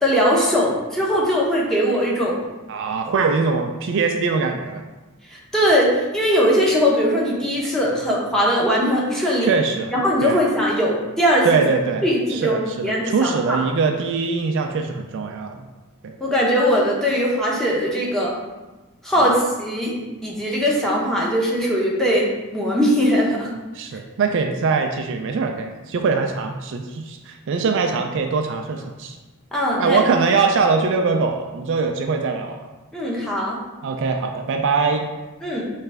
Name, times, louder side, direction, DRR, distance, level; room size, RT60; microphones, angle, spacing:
voice 1, 0.0-2.4 5.3-9.5 9.9-11.5 12.0-13.6 16.2-18.3 19.0-20.0 20.2-23.5 29.5-30.0 32.9-33.6 35.4-35.7, equal, ahead, -5 dB, 0.9 m, -20 dB
voice 2, 2.7-4.8 9.4-9.9 10.2-10.4 11.4-12.0 12.3-15.6 16.0-16.2 19.2-19.3 23.7-29.2 29.8-32.7 33.8-35.1, right 4 dB, 60° right, 4 dB, 0.4 m, -22 dB
4.8 x 3.2 x 3.4 m, 1.1 s
head